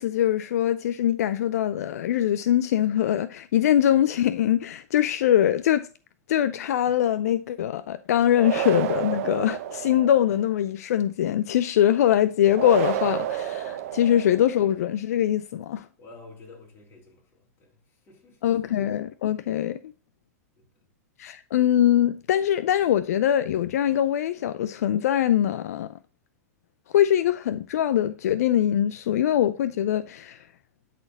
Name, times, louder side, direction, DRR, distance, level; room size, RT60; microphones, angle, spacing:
voice 1, 0.0-5.9 6.3-15.9 18.4-19.8 21.2-25.9 26.9-30.5, left 11 dB, 70° left, 0.5 m, -23 dB
sound 1, 8.3-10.4 12.5-14.6, right 11 dB, 60° right, 0.8 m, -30 dB
voice 2, 16.0-18.6 20.6-20.8, left 3 dB, 30° left, 3.3 m, -50 dB
10.5 x 4.3 x 4.0 m
hypercardioid pair, 110°, 9 cm